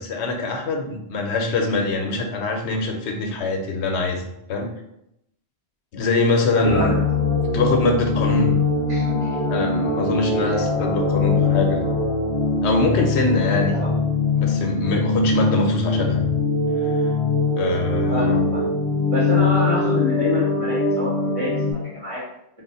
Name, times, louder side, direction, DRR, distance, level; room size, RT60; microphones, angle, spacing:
voice 1, 0.0-4.2 4.5-4.7 5.9-6.9 7.5-8.6 9.5-11.8 12.6-13.8 14.4-16.2 17.6-18.5, left 3 dB, 85° left, 3 dB, 0.9 m, -23 dB
voice 2, 6.5-7.0 8.9-9.6 10.4-10.6 13.5-13.9 18.1-18.7 19.1-22.2, equal, 30° right, -8 dB, 1.6 m, -27 dB
sound 1, 6.6-21.7, left 3 dB, 40° left, 0.5 m, -22 dB
3.0 x 2.4 x 3.9 m, 0.80 s
omnidirectional pair, 1.1 m